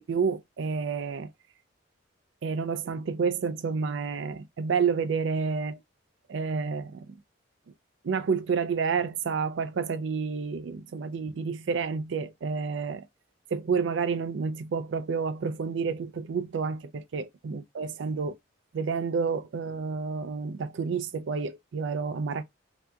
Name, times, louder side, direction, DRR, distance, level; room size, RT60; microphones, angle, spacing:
voice 1, 0.1-1.3 2.4-5.8 6.3-7.1 8.0-13.1 13.5-18.4 18.7-22.4, right 5 dB, 65° right, 0.4 m, -29 dB
3.4 x 2.7 x 2.2 m
head